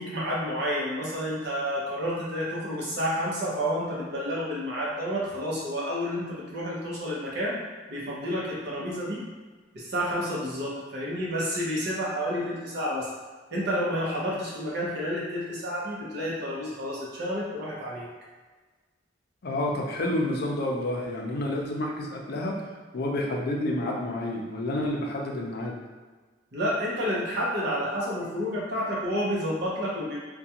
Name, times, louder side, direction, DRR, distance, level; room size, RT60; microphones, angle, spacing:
voice 1, 0.0-7.6 7.9-9.2 9.7-13.1 13.5-18.1 26.5-30.2, equal, 60° right, -5 dB, 0.7 m, -30 dB
voice 2, 19.4-22.6 22.9-25.8, left 1 dB, 55° left, -1 dB, 0.4 m, -29 dB
2.4 x 2.2 x 2.8 m, 1.4 s
head